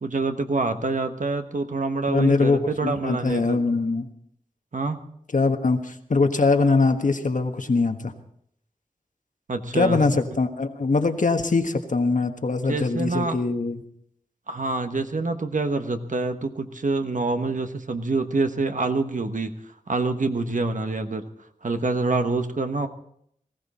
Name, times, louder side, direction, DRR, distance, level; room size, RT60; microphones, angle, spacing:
voice 1, 0.0-3.6 4.7-5.0 9.5-10.0 12.7-13.4 14.5-19.5 19.9-21.3 21.6-22.9, right 3 dB, 65° right, 7 dB, 1.2 m, -26 dB
voice 2, 2.1-4.1 5.3-8.1 9.7-13.8, left 3 dB, 65° left, 6 dB, 1.4 m, -22 dB
19.0 x 15.5 x 4.2 m, 0.67 s
wide cardioid pair, 70°, 14 cm